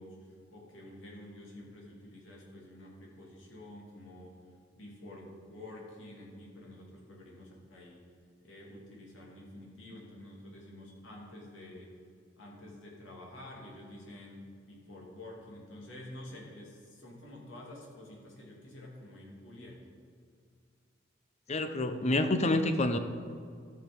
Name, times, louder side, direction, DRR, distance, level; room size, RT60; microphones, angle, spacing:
voice 1, 0.0-4.4 4.7-8.1 8.4-11.9 12.4-19.9, left 1 dB, 80° left, -3 dB, 2.6 m, -49 dB
voice 2, 21.5-23.0, left 2 dB, 35° left, 8 dB, 0.7 m, -28 dB
13.5 x 5.9 x 5.3 m, 2.2 s
head